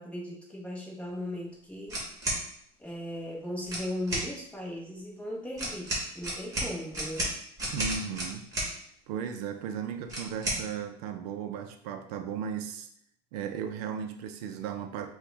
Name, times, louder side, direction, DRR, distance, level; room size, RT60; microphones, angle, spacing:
voice 1, 0.0-2.0 2.8-7.3, left 1 dB, 5° left, -4 dB, 1.0 m, -37 dB
sound 1, 1.9-2.4 3.6-4.3 5.6-8.7 10.1-10.6, right 1 dB, 15° right, 1.5 m, -32 dB
voice 2, 7.7-8.5 9.1-12.9 13.3-15.1, right 7 dB, 85° right, 6 dB, 0.6 m, -36 dB
6.0 x 2.3 x 3.5 m, 0.67 s
cardioid pair, 160°, 20 cm